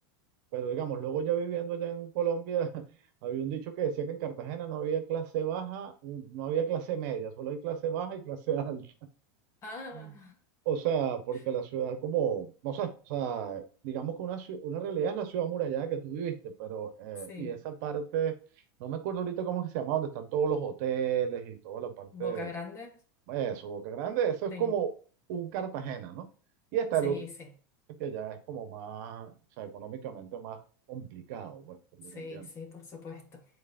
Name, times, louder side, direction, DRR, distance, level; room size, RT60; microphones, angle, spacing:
voice 1, 0.5-2.8 3.2-8.9 9.9-10.1 10.6-18.4 18.8-22.5 23.3-24.9 25.3-26.3 26.7-27.2 27.9-30.6 30.9-32.5, right 8 dB, 55° right, 1.3 m, -33 dB
voice 2, 9.6-10.3 17.3-17.6 22.1-23.0 24.5-24.8 27.0-27.5 32.0-33.4, left 4 dB, 25° left, 1.5 m, -42 dB
9.6 x 4.1 x 2.7 m
supercardioid pair, 160°, 11 cm